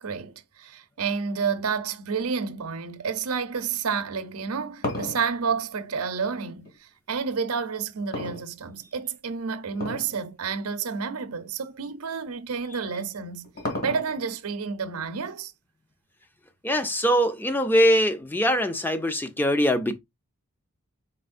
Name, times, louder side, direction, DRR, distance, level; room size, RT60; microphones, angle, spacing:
voice 1, 0.0-13.5 13.8-15.5, right 5 dB, 85° right, 0.6 m, -30 dB
sound 1, 4.3-6.7 8.1-9.0 9.7-10.2 10.5-10.6 11.4-11.5 12.8-14.3, left 1 dB, 45° left, 1.9 m, -33 dB
voice 2, 16.6-20.0, equal, 10° left, 0.4 m, -22 dB
4.3 x 4.2 x 2.5 m
head